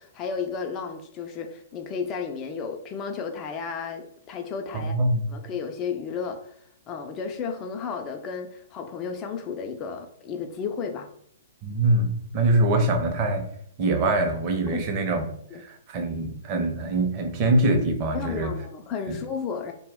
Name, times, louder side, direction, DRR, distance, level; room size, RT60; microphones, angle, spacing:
voice 1, 0.0-4.9 5.3-6.6 6.9-11.1 14.7-14.9 15.5-15.6 18.1-19.7, left 5 dB, 30° left, 3 dB, 0.3 m, -33 dB
voice 2, 4.7-5.2 11.6-13.5 13.8-15.3 15.5-18.5 19.1-19.2, right 2 dB, 35° right, 4 dB, 0.6 m, -24 dB
2.1 x 2.1 x 3.4 m, 0.67 s
hypercardioid pair, 135°, 0 cm